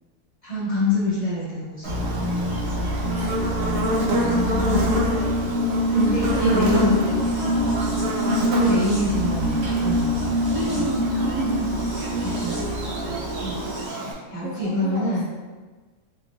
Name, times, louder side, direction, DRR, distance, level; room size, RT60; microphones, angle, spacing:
voice 1, 0.4-1.9 4.3-5.0 5.9-7.0 8.5-10.3 10.7-10.9 12.2-12.6 13.4-15.3, equal, 25° left, -10 dB, 0.9 m, -25 dB
sound 1, 1.8-13.9, equal, 65° right, 1.8 m, -25 dB
Buzz, 1.8-14.1, equal, 85° right, 0.5 m, -29 dB
voice 2, 3.0-3.5 4.7-5.6 6.0-8.0 9.5-9.9 10.5-13.1 14.4-15.4, equal, 60° left, -10 dB, 1.5 m, -33 dB
4.6 x 2.7 x 2.4 m, 1.3 s
omnidirectional pair, 1.9 m